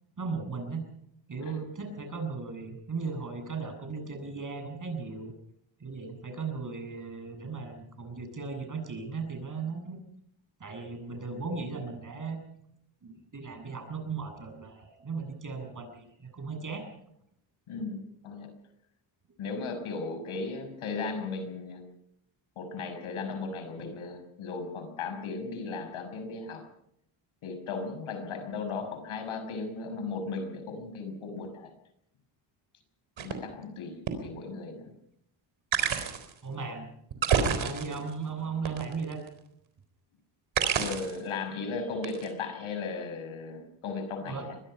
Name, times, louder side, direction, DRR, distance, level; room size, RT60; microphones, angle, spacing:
voice 1, 0.2-0.8 1.3-5.3 5.8-10.0 10.6-12.4 13.0-16.8 17.8-17.9 36.4-36.9 37.4-39.2 44.3-44.5, right 4 dB, 40° right, 5 dB, 7.9 m, -37 dB
voice 2, 17.7-18.5 19.4-21.8 22.6-26.7 27.4-31.7 33.2-34.8 40.7-44.4, left 4 dB, 75° left, 8 dB, 6.1 m, -36 dB
sound 1, 33.2-33.3 34.1-34.2 35.7-36.3 37.1-38.1 38.6-39.3 40.5-41.2 42.0-42.3, right 7 dB, 65° right, 4.0 m, -28 dB
24.0 x 20.5 x 5.7 m, 0.74 s
cardioid pair, 90°, 49 cm